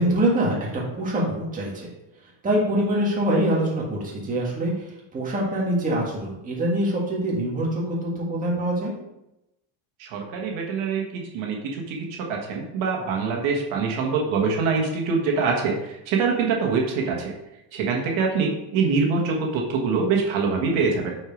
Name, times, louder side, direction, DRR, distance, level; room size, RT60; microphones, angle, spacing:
voice 1, 0.0-1.9 2.4-8.9, right 1 dB, 15° right, -4 dB, 1.6 m, -24 dB
voice 2, 10.0-11.6 11.9-17.3 17.7-21.1, right 4 dB, 70° right, 0 dB, 1.5 m, -24 dB
6.4 x 4.6 x 5.1 m, 0.90 s
cardioid pair, 170°, 49 cm